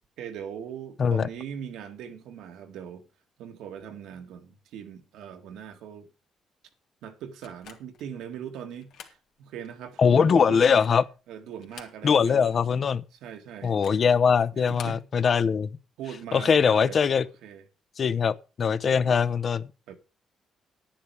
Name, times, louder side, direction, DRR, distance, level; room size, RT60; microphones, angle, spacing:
voice 1, 0.2-3.1 3.4-6.1 7.0-10.9 11.3-12.6 13.2-13.8 14.6-15.1 16.0-17.0 17.4-17.6 19.9-20.0, right 8 dB, 85° right, 1.9 m, -40 dB
sound 1, 7.4-8.1 8.7-9.2 9.6-9.7 10.4-11.1 11.5-12.3 12.6-12.7 13.6-14.1 14.6-15.0, left 8 dB, 80° left, 2.5 m, -48 dB
voice 2, 10.0-11.0 12.0-13.0 13.6-15.7 16.3-17.2 18.0-19.6, left 6 dB, 50° left, 0.8 m, -22 dB
10.5 x 10.0 x 4.8 m
cardioid pair, 90°, 0 cm